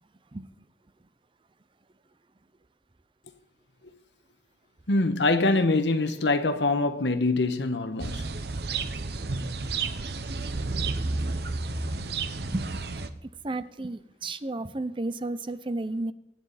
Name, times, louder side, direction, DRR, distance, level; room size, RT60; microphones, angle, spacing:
voice 1, 4.9-8.3, left 2 dB, 90° left, 1.2 m, -24 dB
sound 1, 8.0-13.1, right 3 dB, 65° right, 0.9 m, -31 dB
voice 2, 11.9-12.7 13.2-16.1, right 2 dB, 30° right, 0.6 m, -33 dB
24.0 x 9.5 x 4.2 m
head